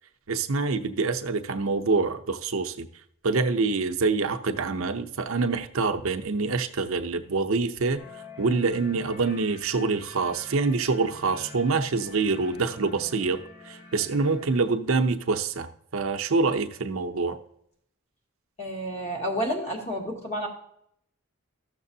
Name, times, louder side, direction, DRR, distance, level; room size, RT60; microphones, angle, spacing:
voice 1, 0.3-2.9 3.2-8.0 8.4-17.4, right 4 dB, 75° right, 6 dB, 0.6 m, -26 dB
sound 1, 8.0-14.6, left 3 dB, 60° left, 3.4 m, -47 dB
voice 2, 18.6-20.5, equal, 30° left, -2 dB, 2.1 m, -30 dB
14.0 x 6.7 x 2.7 m, 0.69 s
head